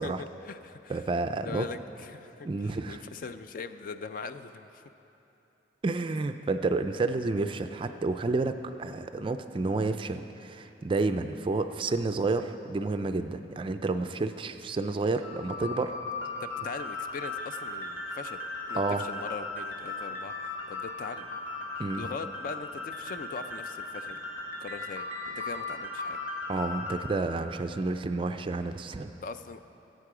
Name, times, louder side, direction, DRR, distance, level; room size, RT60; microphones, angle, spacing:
voice 1, 0.0-1.0 1.4-4.8 16.4-18.4 18.7-20.3 20.7-21.3 21.7-24.2 24.6-25.0 25.4-26.2 29.2-29.7, left 4 dB, 45° left, 10 dB, 0.4 m, -41 dB
voice 2, 0.9-1.7 2.4-3.0 5.8-16.0 18.7-19.0 21.8-22.1 26.5-29.1, right 3 dB, 25° right, 9 dB, 0.3 m, -30 dB
sound 1, 15.2-27.0, left 3 dB, 70° left, 2.2 m, -37 dB
16.0 x 8.3 x 4.9 m, 3.0 s
head